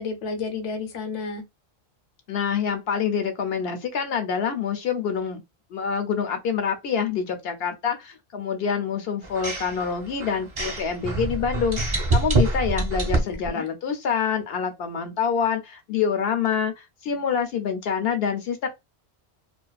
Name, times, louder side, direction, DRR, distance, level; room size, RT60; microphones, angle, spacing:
voice 1, 0.0-1.4 13.1-13.7, left 4 dB, 45° left, 0.6 m, -32 dB
voice 2, 2.3-5.4 5.7-18.7, left 7 dB, 70° left, 0.8 m, -26 dB
sound 1, 9.2-13.5, right 2 dB, 35° right, 0.6 m, -26 dB
2.4 x 2.2 x 2.3 m
omnidirectional pair, 1.1 m